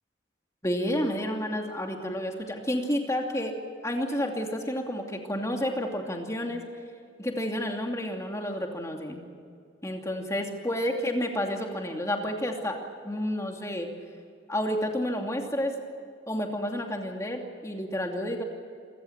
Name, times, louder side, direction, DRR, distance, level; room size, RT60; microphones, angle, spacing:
voice 1, 0.6-3.6 3.8-6.6 7.2-9.2 9.8-12.8 13.0-13.9 14.5-15.7 16.3-18.4, equal, 15° left, 2 dB, 2.7 m, -30 dB
28.0 x 15.5 x 8.8 m, 2.3 s
head